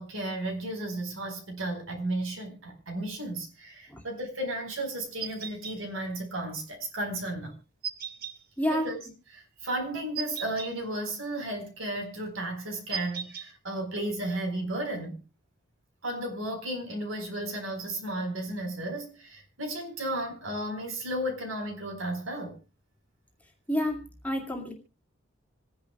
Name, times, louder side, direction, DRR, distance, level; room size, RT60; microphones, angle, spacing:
voice 1, 0.0-7.5 8.7-9.0 9.3-15.2 16.0-22.5, right 1 dB, 75° right, 4.4 m, -34 dB
sound 1, 5.2-5.7 7.8-8.3 10.1-10.7 12.9-13.5, right 7 dB, 45° right, 1.7 m, -36 dB
voice 2, 8.6-8.9 23.7-24.7, equal, 5° left, 2.2 m, -29 dB
26.5 x 10.5 x 2.3 m
head